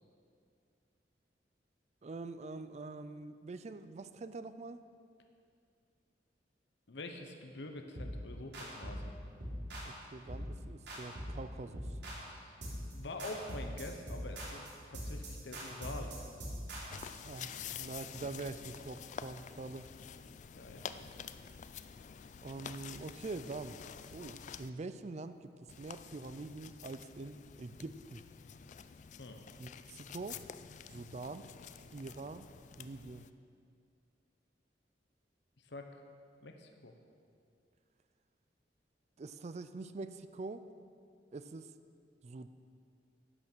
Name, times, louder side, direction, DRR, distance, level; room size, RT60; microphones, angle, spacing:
voice 1, 2.0-4.8 9.8-11.9 17.2-19.9 22.4-23.8 24.1-28.2 29.6-30.4 30.9-31.5 31.9-32.5 32.8-33.2 39.2-40.6 41.3-41.7 42.2-42.5, right 3 dB, 40° right, 12 dB, 0.4 m, -44 dB
voice 2, 6.9-9.1 12.3-12.6 12.9-16.1 20.6-21.3 29.2-29.4 35.6-35.9 36.4-36.9, left 2 dB, 75° left, 5 dB, 0.9 m, -46 dB
sound 1, 8.0-8.2 8.5-9.1 9.4-9.9 10.3-10.5 10.9-11.4 11.7-12.3 12.6-12.9 13.2-17.1, equal, 70° right, 3.4 m, -42 dB
sound 2, 16.9-24.7 25.7-33.3, left 7 dB, 45° left, 0.3 m, -49 dB
11.0 x 9.0 x 6.1 m, 2.3 s
head